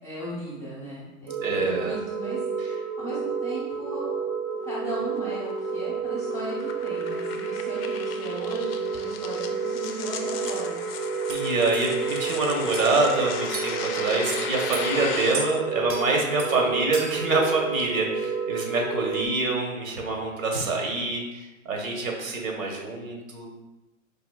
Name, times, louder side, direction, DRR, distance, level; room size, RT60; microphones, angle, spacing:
voice 1, 0.0-2.4 3.0-4.2 4.7-10.8, right 1 dB, 5° left, -7 dB, 0.7 m, -37 dB
sound 1, 1.3-19.3, right 5 dB, 25° right, 0.3 m, -30 dB
voice 2, 1.4-2.0 11.3-23.5, right 3 dB, 75° right, 0 dB, 1.1 m, -26 dB
sound 2, 4.6-15.4, left 6 dB, 50° left, 0.4 m, -36 dB
sound 3, 9.8-9.9 10.5-10.6 11.3-11.4 11.7-11.9 12.7-12.9 13.5-13.7 14.3-14.8 15.3-15.5 15.9-16.0 16.4-16.5 16.9-17.2, right 4 dB, 40° right, 0.8 m, -35 dB
4.7 x 2.7 x 2.3 m, 1.0 s
hypercardioid pair, 135°, 41 cm